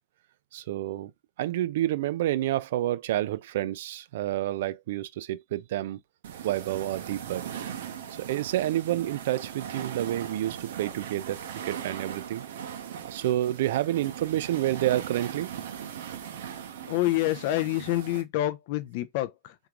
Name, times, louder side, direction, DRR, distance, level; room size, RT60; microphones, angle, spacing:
voice 1, 0.5-1.1 1.4-6.0 6.4-7.5 8.2-12.4 13.0-15.5, right 13 dB, 60° right, 0.3 m, -29 dB
sound 1, 6.2-18.2, right 9 dB, 85° right, 0.7 m, -39 dB
voice 2, 16.9-19.5, left 15 dB, 45° left, 0.4 m, -27 dB
3.6 x 2.4 x 2.9 m
supercardioid pair, 180°, 0 cm